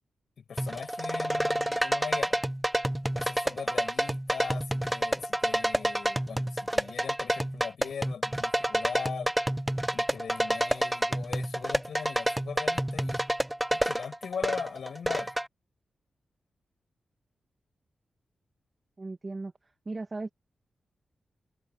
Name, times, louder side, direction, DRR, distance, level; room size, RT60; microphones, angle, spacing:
voice 1, 0.4-2.4 3.1-9.3 9.9-13.2 13.7-15.3, left 6 dB, 65° left, 5.8 m, -40 dB
sound 1, 0.6-15.5, right 1 dB, 5° right, 0.5 m, -29 dB
voice 2, 19.0-19.5 19.8-20.3, right 3 dB, 25° right, 1.5 m, -36 dB
wide cardioid pair, 160°, 0 cm